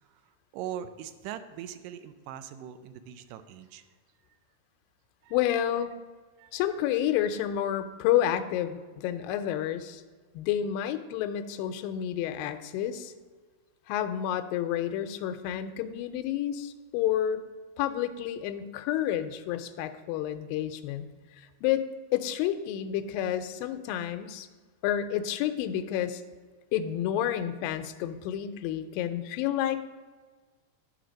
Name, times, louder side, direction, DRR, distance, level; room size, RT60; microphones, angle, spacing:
voice 1, 0.5-3.8 5.2-5.4 6.4-6.6, right 10 dB, 80° right, 11 dB, 2.0 m, -41 dB
voice 2, 5.3-5.9 6.5-10.0 10.3-13.1 13.9-17.4 17.8-21.1 21.4-21.8 22.1-24.5 24.8-26.2 26.7-29.8, left 11 dB, 80° left, 9 dB, 2.3 m, -30 dB
11.0 x 4.7 x 5.1 m, 1.4 s
omnidirectional pair, 4.2 m